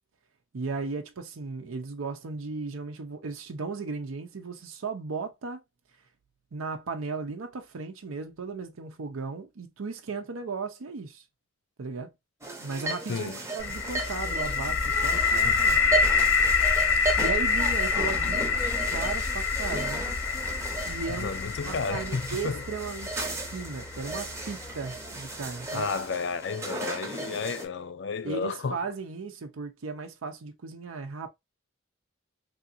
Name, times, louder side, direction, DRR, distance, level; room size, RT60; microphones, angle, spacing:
voice 1, 0.5-5.6 6.5-11.2 11.8-12.1 12.6-15.8 17.2-18.4 18.9-20.1 20.8-21.4 21.6-26.0 28.2-31.3, right 4 dB, 85° right, 0.6 m, -36 dB
sound 1, 12.4-27.7, right 2 dB, 15° right, 0.7 m, -35 dB
voice 2, 13.1-13.4 15.4-15.7 21.1-22.6 25.7-28.8, left 5 dB, 55° left, 0.4 m, -32 dB
sound 2, 13.6-25.4, left 5 dB, 80° left, 1.0 m, -27 dB
3.4 x 2.5 x 2.6 m
head